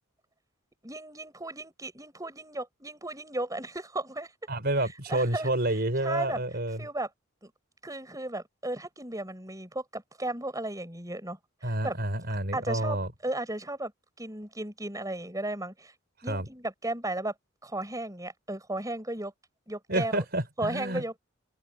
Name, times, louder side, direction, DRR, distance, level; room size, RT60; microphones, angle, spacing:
voice 1, 0.8-4.3 5.1-5.5 6.0-6.4 6.8-7.1 7.4-7.5 7.8-12.0 12.5-13.0 13.2-13.9 14.2-15.9 16.2-17.3 17.6-19.3 19.7-20.2 20.6-21.2, right 1 dB, 15° right, 7.1 m, -35 dB
voice 2, 4.5-6.8 11.6-13.1 16.3-16.5 19.9-21.0, right 1 dB, 45° right, 4.6 m, -29 dB
head